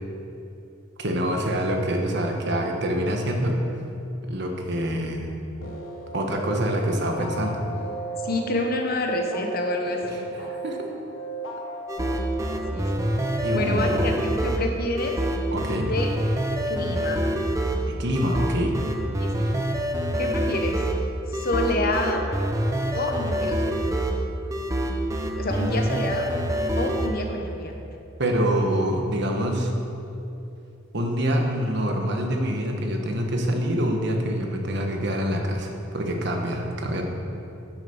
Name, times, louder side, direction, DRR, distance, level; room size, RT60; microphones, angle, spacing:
voice 1, 1.0-3.6 4.3-5.3 6.1-7.6 10.6-10.9 13.4-14.1 15.5-15.9 17.9-18.8 28.2-29.7 30.9-37.0, equal, 55° right, 2 dB, 1.3 m, -25 dB
sound 1, 5.6-14.1, right 3 dB, 80° left, 1.1 m, -36 dB
voice 2, 8.2-10.3 12.7-13.1 13.5-15.2 15.7-16.1 16.7-17.3 19.2-19.6 20.1-20.9 21.3-22.3 22.9-23.8 25.4-26.4 26.7-27.8, left 2 dB, 50° left, 3 dB, 1.0 m, -28 dB
sound 2, 11.9-27.1, right 1 dB, 15° right, 0.7 m, -26 dB
9.8 x 6.6 x 7.1 m, 2.8 s
head